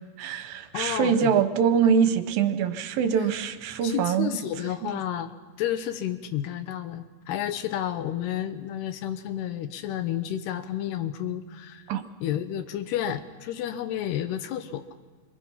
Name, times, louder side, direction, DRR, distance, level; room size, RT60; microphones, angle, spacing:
voice 1, 0.2-4.4 11.9-12.0, right 7 dB, 70° right, 9 dB, 2.5 m, -24 dB
voice 2, 0.7-1.3 3.8-5.3 5.6-11.8 12.2-14.8, left 11 dB, 80° left, 10 dB, 3.1 m, -31 dB
27.0 x 25.5 x 5.8 m, 1.3 s
omnidirectional pair, 4.7 m